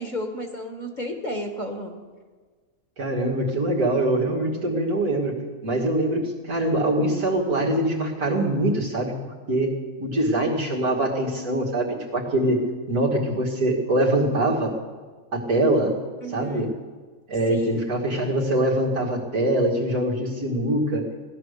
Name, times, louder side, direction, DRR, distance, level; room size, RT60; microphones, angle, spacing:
voice 1, 0.0-2.0 16.2-16.7 17.5-17.9, equal, 35° left, 4 dB, 1.5 m, -32 dB
voice 2, 3.0-9.7 10.0-12.6 12.9-14.7 15.3-16.0 16.3-16.7 17.3-21.0, right 1 dB, 90° right, -2 dB, 2.8 m, -23 dB
17.0 x 11.0 x 6.7 m, 1.5 s
omnidirectional pair, 1.5 m